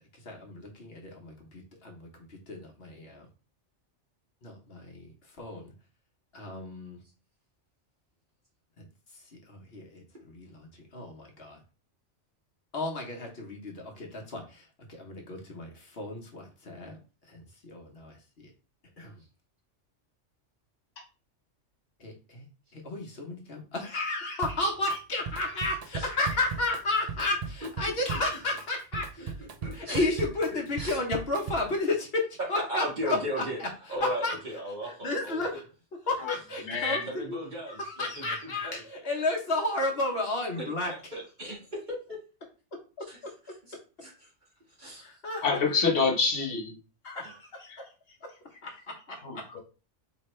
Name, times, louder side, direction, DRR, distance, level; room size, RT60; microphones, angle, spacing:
voice 1, 0.1-3.3 4.4-5.1 5.4-5.7 6.3-7.0 8.8-8.9 9.1-11.6 12.7-17.0 17.2-18.2 18.4-18.5 19.0-19.2 22.0-22.5 22.7-29.3 29.7-33.7 34.0-34.3 35.0-35.6 36.1-37.4 37.7-40.9 43.0-43.3 45.0-45.5 47.0-49.6, left 2 dB, 55° left, 0 dB, 1.2 m, -33 dB
Drum kit, 24.4-25.0 25.3-31.8, right 5 dB, 60° right, 0.4 m, -38 dB
voice 2, 29.4-30.1 30.5-31.0 32.5-33.6 33.9-35.4 36.8-38.8 39.2-39.3 40.6-42.2 43.0-43.2 43.4-44.3 44.7-45.1, equal, 40° right, -4 dB, 2.0 m, -37 dB
voice 3, 36.6-37.1 45.4-46.7 49.2-49.4, left 4 dB, 85° left, 1 dB, 1.4 m, -26 dB
4.4 x 3.4 x 3.1 m, 0.34 s
omnidirectional pair, 1.2 m